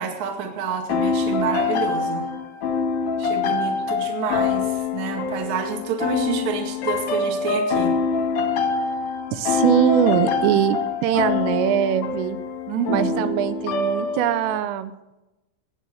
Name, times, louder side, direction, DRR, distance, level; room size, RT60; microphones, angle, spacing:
voice 1, 0.0-2.2 3.2-7.9 12.7-13.3, right 6 dB, 50° right, 3 dB, 2.1 m, -28 dB
sound 1, 0.9-14.6, left 5 dB, 70° left, 2.0 m, -25 dB
voice 2, 9.3-12.4 12.9-14.9, right 11 dB, 85° right, 12 dB, 3.3 m, -22 dB
18.5 x 8.3 x 6.6 m, 0.98 s
omnidirectional pair, 5.8 m